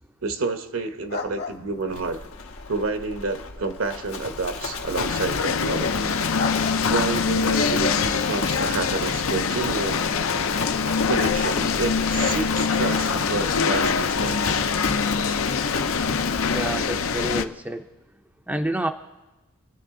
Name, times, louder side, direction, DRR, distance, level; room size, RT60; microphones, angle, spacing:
voice 1, 0.2-2.2 2.7-6.1 6.9-10.1 11.0-14.6, right 3 dB, 70° right, 7 dB, 1.1 m, -29 dB
sound 1, 1.0-13.2, left 3 dB, 50° left, 1.1 m, -41 dB
Livestock farm animals working animals, 1.9-17.4, left 3 dB, 85° left, 1.4 m, -33 dB
sound 2, 5.0-17.4, left 5 dB, 70° left, 0.6 m, -24 dB
voice 2, 16.5-17.9 18.5-18.9, right 1 dB, 5° right, 5 dB, 0.5 m, -28 dB
27.0 x 9.9 x 3.8 m, 1.1 s
head